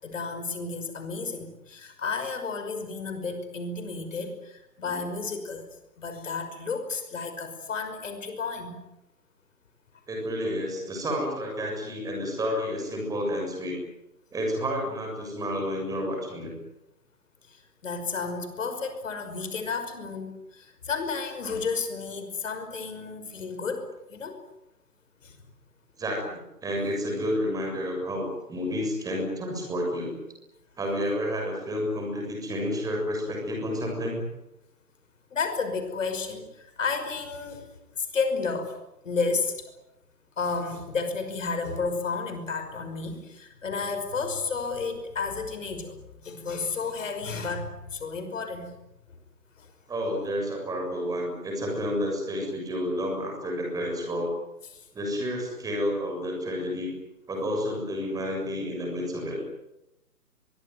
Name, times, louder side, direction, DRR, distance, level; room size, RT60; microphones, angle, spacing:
voice 1, 0.0-5.7 6.0-8.8 17.5-24.4 25.2-25.4 35.3-37.7 38.0-38.7 39.0-39.7 40.4-48.7 49.6-49.7 54.7-54.9, left 4 dB, 50° left, 7 dB, 5.7 m, -32 dB
voice 2, 10.1-13.8 14.3-16.5 26.0-30.1 30.8-34.3 49.9-54.3 54.9-56.9 57.3-59.4, equal, 5° right, 1 dB, 6.9 m, -30 dB
23.5 x 23.5 x 9.4 m, 0.90 s
figure-of-eight pair, 135°, 48 cm